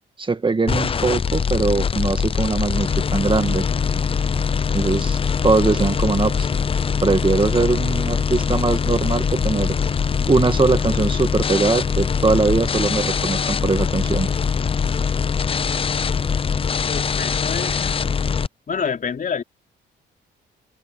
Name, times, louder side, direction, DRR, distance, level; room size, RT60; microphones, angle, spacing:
voice 1, 0.2-3.7 4.7-6.5 7.0-9.8 10.3-14.3, right 3 dB, 25° right, 1.7 m, -21 dB
sound 1, 0.7-18.5, left 6 dB, 30° left, 0.5 m, -22 dB
voice 2, 16.8-18.0 18.7-19.4, left 6 dB, 45° left, 3.8 m, -27 dB
cardioid pair, 90°, 20 cm